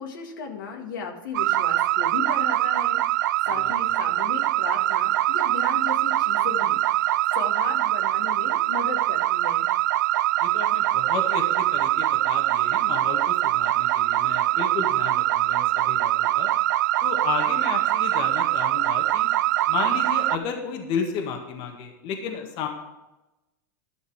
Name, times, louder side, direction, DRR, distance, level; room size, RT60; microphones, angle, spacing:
voice 1, 0.0-3.0 3.5-7.1 7.3-9.7, left 5 dB, 75° left, 2 dB, 1.8 m, -35 dB
sound 1, 1.3-20.4, right 15 dB, 70° right, 0.4 m, -23 dB
voice 2, 10.4-16.5 17.0-19.3 19.7-22.7, left 6 dB, 50° left, 3 dB, 1.8 m, -33 dB
12.0 x 6.6 x 4.8 m, 1.0 s
hypercardioid pair, 105°, 11 cm